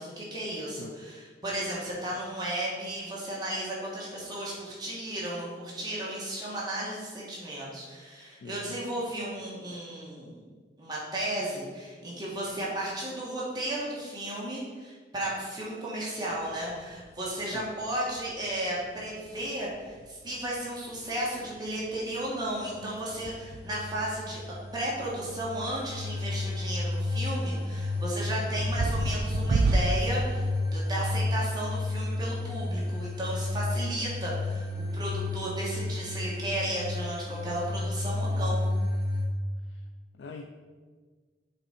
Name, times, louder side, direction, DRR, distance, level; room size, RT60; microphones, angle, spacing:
voice 1, 0.0-10.4 10.8-24.4 24.7-34.6 34.9-38.7, right 1 dB, 25° right, -5 dB, 1.2 m, -34 dB
voice 2, 8.4-8.8 17.4-17.8 39.7-39.8 40.1-40.5, left 4 dB, 85° left, 5 dB, 0.4 m, -44 dB
sound 1, 16.3-30.4, right 3 dB, 65° right, 0.3 m, -35 dB
sound 2, 22.9-39.2, left 2 dB, 5° left, 1.3 m, -32 dB
7.8 x 3.6 x 4.3 m, 1.5 s
head